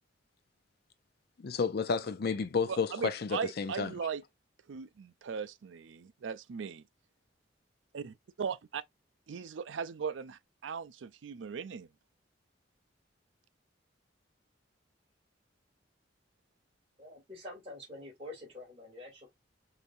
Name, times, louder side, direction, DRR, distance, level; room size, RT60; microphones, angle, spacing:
voice 1, 1.4-3.9, left 5 dB, 55° left, 0.5 m, -31 dB
voice 2, 2.7-4.2 4.7-6.8 7.9-8.8 9.3-11.9, right 6 dB, 80° right, 0.4 m, -38 dB
voice 3, 17.0-19.3, left 2 dB, 35° right, 2.5 m, -47 dB
5.0 x 2.7 x 2.5 m
head